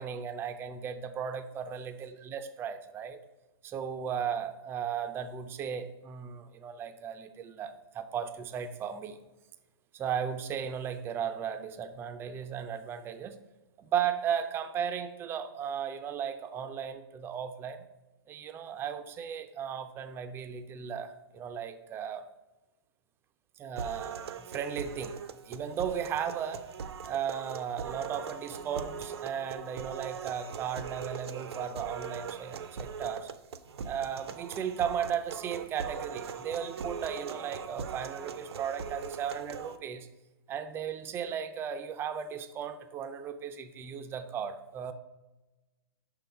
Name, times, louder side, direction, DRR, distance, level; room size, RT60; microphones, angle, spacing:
voice 1, 0.0-3.2 3.6-9.2 9.9-13.4 13.8-17.8 18.3-22.2 23.6-25.2 25.5-26.6 27.0-33.3 33.8-40.1 40.5-44.9, right 8 dB, 15° right, 8 dB, 0.4 m, -36 dB
sound 1, 23.8-39.8, right 6 dB, 75° right, 0.6 m, -41 dB
5.6 x 5.3 x 4.5 m, 1.1 s
hypercardioid pair, 130°, 14 cm